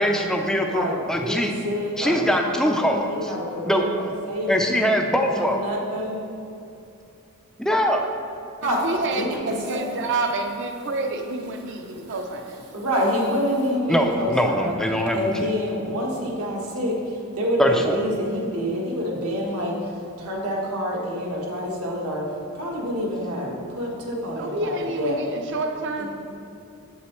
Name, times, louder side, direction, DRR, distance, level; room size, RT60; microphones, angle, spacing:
voice 1, 0.0-1.5 2.0-3.3 3.7-3.8 4.5-5.6 7.6-8.1 13.9-15.5 17.6-18.0, equal, ahead, 3 dB, 0.4 m, -22 dB
voice 2, 0.6-4.8 5.2-6.2 8.6-8.8 9.1-9.8 11.4-11.5 11.9-12.0 12.7-14.8 15.1-22.3 22.5-25.2 26.0-26.1, equal, 80° right, -2 dB, 1.4 m, -27 dB
voice 3, 8.6-12.6 24.3-26.1, right 2 dB, 55° right, 5 dB, 0.6 m, -29 dB
7.6 x 7.1 x 3.1 m, 2.6 s
head